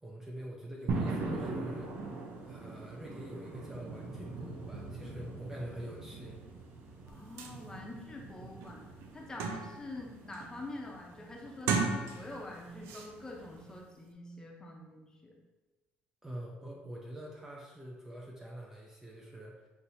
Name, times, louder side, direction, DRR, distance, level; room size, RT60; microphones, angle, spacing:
voice 1, 0.0-1.9 2.4-6.4 16.2-19.7, right 1 dB, 10° right, -3 dB, 0.6 m, -45 dB
sound 1, 0.9-13.8, right 3 dB, 60° right, 0.8 m, -42 dB
voice 2, 7.1-8.8 9.1-15.3, left 2 dB, 15° left, -1 dB, 0.8 m, -46 dB
sound 2, 7.1-7.2 7.4-7.6 8.1-8.2 8.6-9.9 10.3-10.7 11.5-12.5 12.8-13.1, right 5 dB, 85° right, 0.5 m, -35 dB
5.8 x 2.9 x 2.7 m, 1.1 s
cardioid pair, 125°, 4 cm